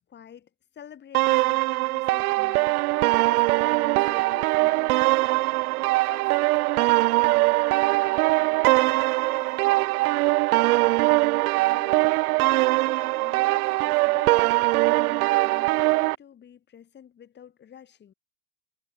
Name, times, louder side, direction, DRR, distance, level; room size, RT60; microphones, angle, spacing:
voice 1, 0.0-5.0 11.7-12.1 12.4-14.6 14.9-18.1, left 9 dB, 20° left, 2.6 m, -48 dB
sound 1, 1.1-16.2, right 21 dB, 65° right, 0.8 m, -22 dB
voice 2, 6.1-10.5, left 13 dB, 85° left, 3.5 m, -52 dB
supercardioid pair, 125°, 47 cm